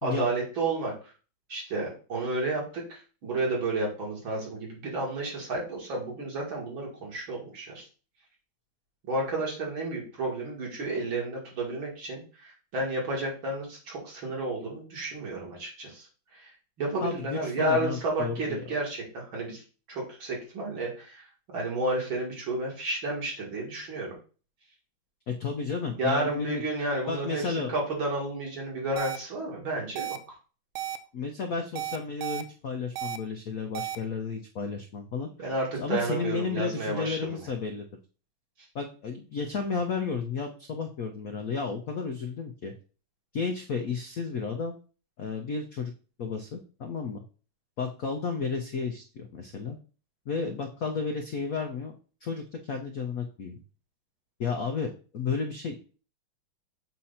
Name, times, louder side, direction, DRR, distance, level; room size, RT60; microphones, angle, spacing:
voice 1, 0.0-0.9 1.5-7.8 9.1-16.1 16.3-16.5 16.8-19.6 19.9-21.2 21.5-24.2 26.0-30.3 35.4-37.4, right 2 dB, 65° right, -2 dB, 3.0 m, -31 dB
voice 2, 17.0-18.6 25.3-26.6 27.1-27.7 31.1-35.3 35.7-37.9 38.7-42.7 43.3-44.8 45.2-45.9 46.2-47.2 47.8-49.8 50.3-51.9 52.2-53.6 54.4-55.8, left 5 dB, 65° left, 3 dB, 0.8 m, -32 dB
sound 1, 29.0-29.2 30.0-30.2 30.7-31.0 31.8-32.4 33.0-33.2 33.7-34.0, right 11 dB, 85° right, 1.5 m, -33 dB
7.5 x 2.9 x 5.6 m, 0.36 s
omnidirectional pair, 2.4 m